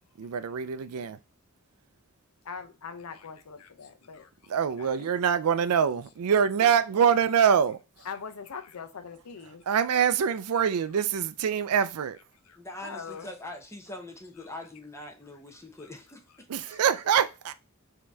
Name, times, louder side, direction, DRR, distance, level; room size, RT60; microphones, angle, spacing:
voice 1, 0.2-1.2 4.5-7.8 9.7-12.2 16.5-17.5, right 7 dB, 85° right, 0.4 m, -24 dB
voice 2, 2.4-4.5 4.8-4.9 8.0-9.6 12.5-13.3 16.6-16.8, left 6 dB, 85° left, 0.7 m, -42 dB
voice 3, 12.6-16.8, left 1 dB, 15° left, 0.8 m, -43 dB
5.2 x 2.9 x 3.4 m
head